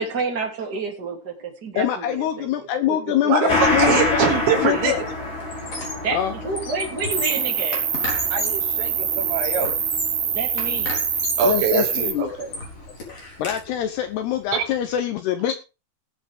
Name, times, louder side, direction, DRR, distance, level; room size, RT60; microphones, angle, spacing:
voice 1, 0.0-3.0 3.4-3.5 5.9-7.8 10.2-10.9, right 4 dB, 25° right, 1 dB, 2.8 m, -29 dB
voice 2, 1.8-4.2 4.5-5.0 6.1-6.3 11.4-12.3 13.1-15.5, left 11 dB, 75° left, 8 dB, 2.8 m, -24 dB
voice 3, 3.3-5.1 8.3-9.7 11.4-12.5 14.5-14.6, right 6 dB, 75° right, 2 dB, 5.2 m, -23 dB
Gong, 3.5-12.4 12.8-12.9, left 2 dB, 15° left, 4.0 m, -28 dB
Squeak, 4.3-4.6 4.9-6.1 6.4-8.7 9.2-10.2 10.6-11.5 12.0-13.6, left 2 dB, 35° left, 4.8 m, -33 dB
Cricket, 7.1-12.1, right 8 dB, 50° right, 2.6 m, -25 dB
19.5 x 7.9 x 3.6 m, 0.30 s
omnidirectional pair, 5.2 m